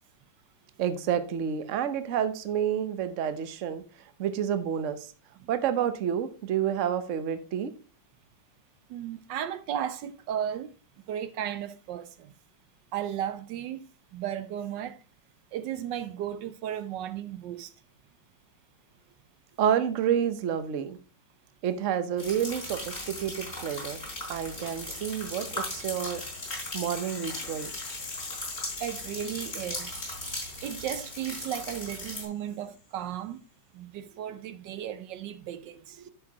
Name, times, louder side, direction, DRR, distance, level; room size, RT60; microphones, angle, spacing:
voice 1, 0.8-3.8 4.2-5.1 5.5-7.7 19.6-21.0 21.6-24.0 24.3-26.2 26.7-27.7 36.0-36.1, right 9 dB, 50° right, 1.0 m, -29 dB
voice 2, 8.9-10.7 11.1-12.3 12.9-15.0 15.5-17.7 28.8-29.9 30.6-33.4 33.7-36.0, right 10 dB, 75° right, 1.3 m, -35 dB
sound 1, 22.2-32.3, left 1 dB, 35° left, 4.0 m, -38 dB
Rattle (instrument), 24.9-33.0, left 7 dB, 65° left, 1.7 m, -47 dB
10.5 x 6.8 x 2.9 m
omnidirectional pair, 2.0 m